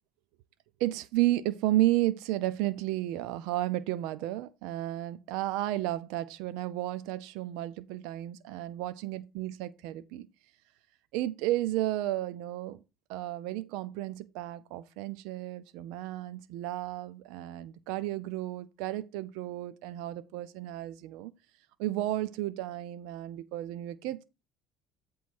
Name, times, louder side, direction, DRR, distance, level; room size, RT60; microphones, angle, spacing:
voice 1, 0.8-10.3 11.1-12.8 13.1-21.3 21.8-24.2, right 15 dB, 80° right, 0.4 m, -32 dB
8.2 x 3.1 x 6.2 m
cardioid pair, 115°, 0 cm